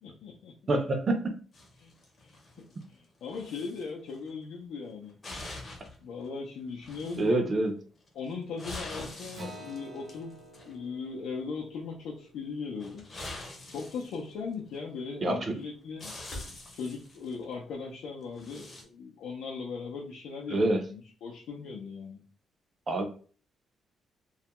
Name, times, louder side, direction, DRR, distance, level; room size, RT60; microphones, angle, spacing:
voice 1, 0.0-0.7 1.8-1.9 2.2-2.3 2.9-5.2 6.0-7.5 8.1-10.3 10.7-13.1 13.7-16.1 16.7-22.2, left 5 dB, 80° left, -4 dB, 0.5 m, -39 dB
voice 2, 0.7-1.4 7.2-7.7 15.2-15.6 20.5-20.8 22.9-23.1, right 2 dB, 30° right, 5 dB, 0.4 m, -26 dB
sound 1, 1.5-2.9 3.2-3.8 4.1-4.3 4.9-6.0 6.2-6.3 6.8-7.4 8.1-10.8 12.8-14.8 15.6-15.7 16.0-17.4 18.2-18.8, left 2 dB, 30° left, 0.7 m, -44 dB
Acoustic guitar, 9.3-14.2, right 1 dB, 60° right, 0.8 m, -50 dB
2.2 x 2.1 x 2.8 m, 0.40 s
cardioid pair, 160°, 0 cm